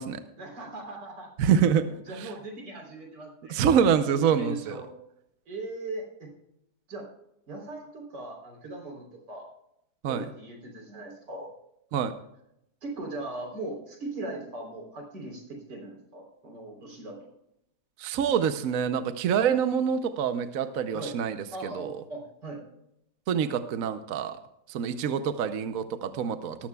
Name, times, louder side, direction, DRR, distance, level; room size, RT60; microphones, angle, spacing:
voice 1, 0.4-1.3 1.8-3.7 4.1-4.9 5.5-6.3 6.9-7.1 7.5-9.5 10.1-11.5 12.8-17.3 20.9-21.2 21.5-22.6, right 2 dB, 80° right, 0 dB, 4.2 m, -39 dB
voice 2, 1.4-1.8 2.1-2.3 3.5-4.8 10.0-10.2 11.9-12.1 18.0-21.4 21.7-21.9 23.3-24.4 24.7-26.7, right 8 dB, 60° right, 10 dB, 1.0 m, -26 dB
19.0 x 13.5 x 2.3 m, 0.79 s
omnidirectional pair, 1.8 m